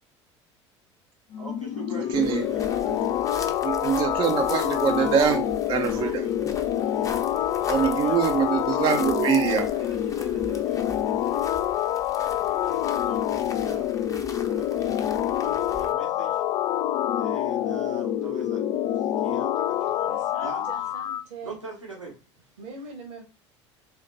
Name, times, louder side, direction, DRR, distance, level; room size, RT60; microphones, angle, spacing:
sound 1, 1.3-21.2, left 11 dB, 35° left, 0.4 m, -26 dB
voice 1, 1.4-3.6 5.9-8.2 9.7-13.9 14.5-16.4 17.1-20.7 21.4-22.2, right 2 dB, 85° right, 1.2 m, -43 dB
sound 2, 2.1-15.9, left 3 dB, 20° left, 0.8 m, -41 dB
voice 2, 2.1-2.5 2.9-3.0 3.6-6.2 7.7-9.7, right 8 dB, 35° right, 0.5 m, -24 dB
voice 3, 20.0-21.6 22.6-23.3, right 3 dB, 65° right, 1.2 m, -41 dB
4.1 x 2.8 x 3.9 m
figure-of-eight pair, 70°, 15 cm